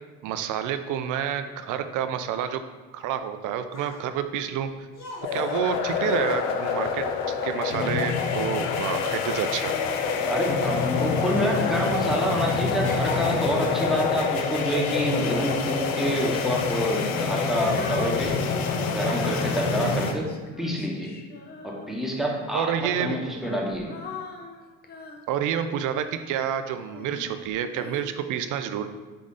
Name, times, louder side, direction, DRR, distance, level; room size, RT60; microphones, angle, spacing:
voice 1, 0.2-2.6 2.9-4.7 5.3-9.8 22.5-23.2 25.3-28.9, right 9 dB, 50° right, 9 dB, 0.5 m, -29 dB
sound 1, 3.2-8.6 8.8-11.0 11.5-12.1 12.4-13.8 14.5-14.7, left 2 dB, 40° left, 1.2 m, -41 dB
sound 2, 5.2-20.1, left 5 dB, 80° left, 0.6 m, -26 dB
Female singing, 9.6-10.6 11.2-16.0 16.8-22.3 23.1-26.2 26.9-28.0, left 3 dB, 25° left, 0.6 m, -43 dB
voice 2, 10.3-18.3 18.9-20.3 20.6-21.1 21.6-23.9, equal, ahead, -2 dB, 1.0 m, -27 dB
3.8 x 3.6 x 3.8 m, 1.3 s
hypercardioid pair, 65°, 40 cm